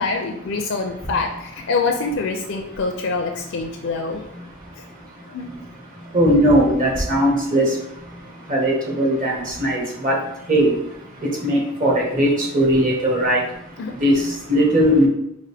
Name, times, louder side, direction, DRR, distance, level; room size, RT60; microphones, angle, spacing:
voice 1, 0.0-4.3 4.8-4.9 5.3-5.5 13.8-13.9, left 4 dB, 65° left, 4 dB, 0.4 m, -25 dB
voice 2, 6.1-7.7 8.5-10.2 10.5-10.7 11.4-13.4 14.0-14.2 14.5-15.1, equal, 40° right, -3 dB, 1.2 m, -18 dB
5.0 x 2.5 x 3.3 m, 0.81 s
head